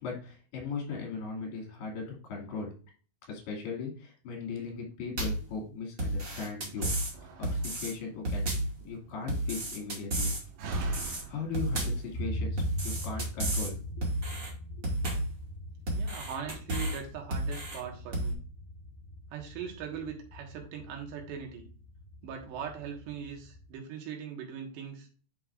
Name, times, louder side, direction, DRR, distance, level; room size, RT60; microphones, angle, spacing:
voice 1, 0.0-2.7 3.3-6.9 7.4-8.5 8.8-10.3 11.1-14.1 14.8-14.9, left 4 dB, 75° left, -1 dB, 4.3 m, -38 dB
sound 1, 5.2-5.5 6.0-7.1 7.4-7.9 8.2-8.8 9.3-10.4 10.7-11.2 11.5-12.1 12.6-13.7 14.0-14.5 14.8-15.3 15.9-17.0 17.3-17.8 18.1-18.3, right 1 dB, 30° right, 1.4 m, -31 dB
Slam, 6.6-12.2, right 3 dB, 65° right, 2.7 m, -46 dB
sound 2, 12.1-23.7, equal, 40° left, 2.0 m, -41 dB
voice 2, 15.9-18.4 19.3-21.6 22.2-25.1, right 7 dB, 85° right, 2 dB, 3.7 m, -40 dB
10.5 x 5.5 x 2.5 m, 0.40 s
omnidirectional pair, 4.8 m